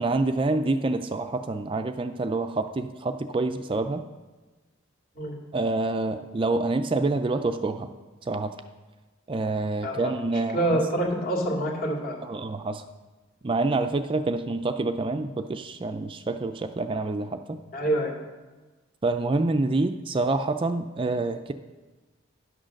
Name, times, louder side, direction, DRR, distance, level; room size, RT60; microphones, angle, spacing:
voice 1, 0.0-4.0 5.5-7.9 8.3-8.5 9.3-10.8 12.2-12.8 13.4-17.6 19.0-21.5, right 2 dB, 25° right, 8 dB, 0.4 m, -27 dB
voice 2, 10.5-12.2 17.7-18.1, right 1 dB, 45° left, 0 dB, 2.3 m, -26 dB
11.0 x 6.4 x 6.4 m, 1.2 s
head